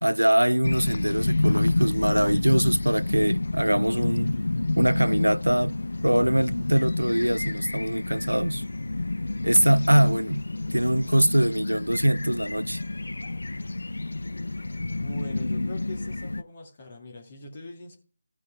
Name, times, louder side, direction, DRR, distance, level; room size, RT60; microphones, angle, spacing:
voice 1, 0.0-4.3 4.8-5.8 6.0-8.6 9.4-10.4 10.7-12.8, right 1 dB, 90° right, 0.3 m, -23 dB
sound 1, 0.6-16.4, left 2 dB, 65° left, 0.4 m, -29 dB
voice 2, 14.8-18.0, left 2 dB, 30° left, 2.0 m, -42 dB
15.5 x 5.2 x 3.4 m
figure-of-eight pair, 160°, 0 cm